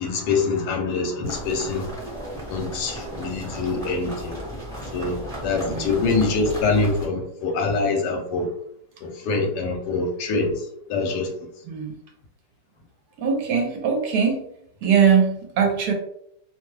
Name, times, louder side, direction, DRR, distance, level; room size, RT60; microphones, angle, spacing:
voice 1, 0.0-1.9 2.5-4.4 4.9-8.5 9.0-11.3, left 3 dB, 75° left, 3 dB, 1.2 m, -25 dB
sound 1, 1.2-7.1, equal, 5° left, 0.7 m, -35 dB
voice 2, 5.7-6.0 11.7-11.9 13.2-14.4 14.8-15.9, right 6 dB, 70° right, 2 dB, 1.1 m, -21 dB
2.8 x 2.3 x 3.1 m, 0.71 s
omnidirectional pair, 1.8 m